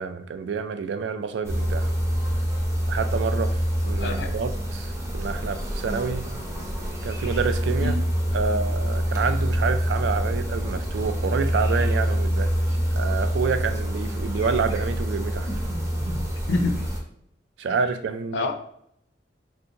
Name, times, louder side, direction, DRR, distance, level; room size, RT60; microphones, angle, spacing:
voice 1, 0.0-1.9 2.9-6.3 7.0-8.0 8.3-12.5 12.9-15.5 17.6-18.5, right 5 dB, 80° right, 0.3 m, -28 dB
sound 1, 1.4-17.0, equal, 15° right, 0.6 m, -26 dB
voice 2, 4.0-4.3 7.8-8.0 16.5-16.7 18.3-18.5, left 2 dB, 80° left, 0.5 m, -25 dB
3.3 x 2.7 x 2.7 m
head